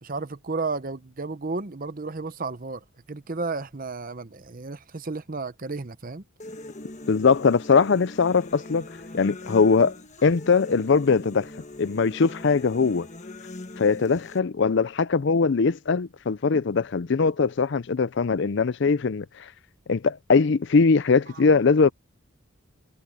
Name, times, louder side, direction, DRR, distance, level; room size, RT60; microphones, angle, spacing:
voice 1, 0.0-6.2, right 3 dB, 40° right, 0.8 m, -33 dB
sound 1, 6.4-14.4, left 2 dB, 35° left, 1.3 m, -41 dB
voice 2, 7.1-8.8 9.1-9.9 10.2-11.5 11.8-13.1 13.8-19.5 19.9-21.9, left 4 dB, 55° left, 0.5 m, -21 dB
head